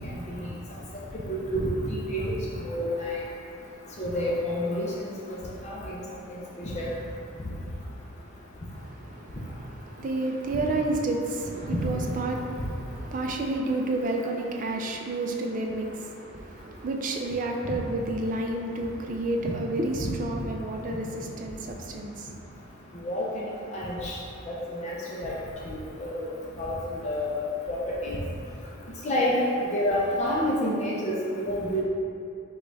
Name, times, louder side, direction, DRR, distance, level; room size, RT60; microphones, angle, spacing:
voice 1, 1.3-2.3 2.6-3.2 4.0-4.9 5.3-5.4 5.6-6.0 6.3-6.9 11.8-11.9 20.0-20.1 23.0-24.2 24.7-25.3 25.7-26.3 26.6-26.8 27.0-27.4 27.7-28.2 29.0-29.4 29.7-31.8, equal, 35° left, -5 dB, 0.5 m, -29 dB
voice 2, 8.8-22.4, right 2 dB, 40° right, 2 dB, 0.4 m, -31 dB
5.1 x 2.3 x 4.0 m, 2.5 s
head